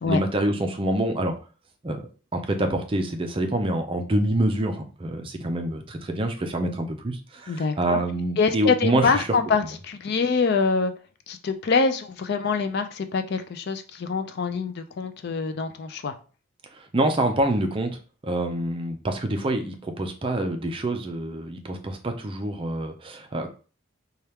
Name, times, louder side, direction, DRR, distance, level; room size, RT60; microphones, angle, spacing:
voice 1, 0.1-1.4 1.8-2.0 2.3-9.3 16.7-23.5, right 1 dB, 25° right, 5 dB, 0.4 m, -26 dB
voice 2, 7.5-8.0 8.4-10.9 11.3-16.1, left 4 dB, 50° left, 9 dB, 0.4 m, -25 dB
4.3 x 2.3 x 3.4 m, 0.37 s
head